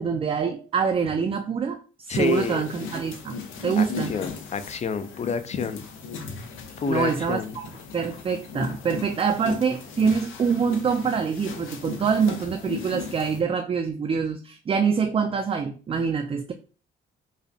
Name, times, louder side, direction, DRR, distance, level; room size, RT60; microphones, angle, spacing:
voice 1, 0.0-1.8 2.1-4.1 6.9-16.5, right 6 dB, 30° right, 0.4 m, -25 dB
sound 1, 2.1-13.4, left 5 dB, 85° left, 0.7 m, -38 dB
voice 2, 2.1-2.6 3.8-5.9 6.8-7.6, left 5 dB, 35° left, 0.5 m, -28 dB
4.9 x 2.2 x 2.7 m
cardioid pair, 90°, 20 cm